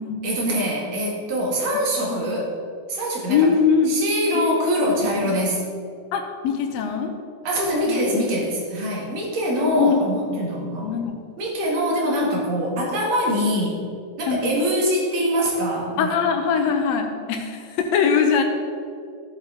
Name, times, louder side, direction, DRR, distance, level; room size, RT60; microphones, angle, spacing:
voice 1, 0.2-2.5 2.9-3.5 3.9-5.6 7.4-10.9 11.4-13.8 14.2-16.2, equal, 55° right, -2 dB, 2.7 m, -23 dB
voice 2, 3.3-3.9 4.3-4.6 5.2-5.4 6.1-7.1 7.9-8.1 9.6-10.0 10.8-11.1 14.3-14.6 16.0-18.4, left 6 dB, 85° left, 4 dB, 1.5 m, -22 dB
14.0 x 7.3 x 3.8 m, 2.3 s
omnidirectional pair, 4.1 m